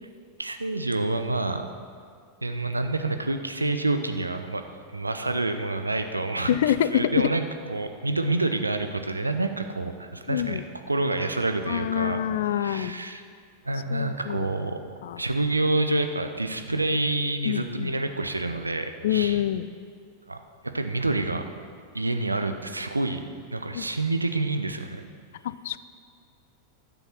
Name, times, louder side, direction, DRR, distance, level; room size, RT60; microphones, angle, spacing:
voice 1, 0.4-1.7 2.4-4.6 4.9-6.6 6.9-7.4 7.7-10.6 10.9-12.2 12.6-13.2 13.6-14.8 15.2-19.4 20.3-20.4 20.6-21.5 21.9-23.2 23.5-25.0, right 2 dB, 80° right, 7 dB, 0.6 m, -27 dB
voice 2, 6.5-7.3 10.3-10.6 11.7-13.0 13.9-14.5 15.0-15.2 17.5-17.9 19.0-19.7 23.7-23.9 25.4-25.8, left 11 dB, 55° left, 15 dB, 0.4 m, -26 dB
12.0 x 7.1 x 5.9 m, 2.2 s
figure-of-eight pair, 90°, 0 cm